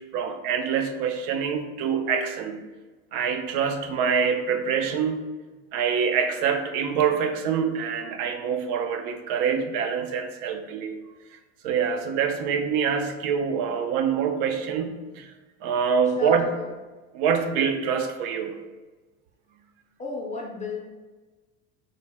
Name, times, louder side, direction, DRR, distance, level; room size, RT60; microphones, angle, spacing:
voice 1, 0.0-2.6 3.1-5.2 5.7-11.0 11.6-15.3 15.6-16.5 17.1-18.6, right 6 dB, 85° right, 6 dB, 0.6 m, -25 dB
voice 2, 16.2-16.7 20.0-20.8, left 4 dB, 20° left, -3 dB, 0.3 m, -34 dB
3.9 x 2.1 x 3.3 m, 1.2 s
cardioid pair, 130°, 42 cm